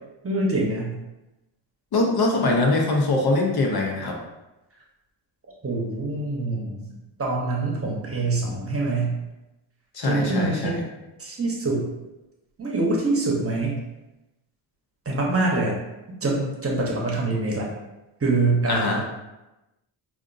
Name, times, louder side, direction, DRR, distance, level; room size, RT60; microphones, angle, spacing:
voice 1, 0.2-0.9 5.6-6.9 7.2-9.1 10.0-10.8 11.2-11.8 12.6-13.8 15.1-15.8 16.2-17.7 18.2-19.1, right 2 dB, 30° right, -2 dB, 0.9 m, -24 dB
voice 2, 1.9-4.2 9.9-10.8 18.7-19.0, left 2 dB, 55° left, 0 dB, 0.8 m, -22 dB
5.0 x 2.5 x 2.5 m, 1.0 s
cardioid pair, 85°, 45 cm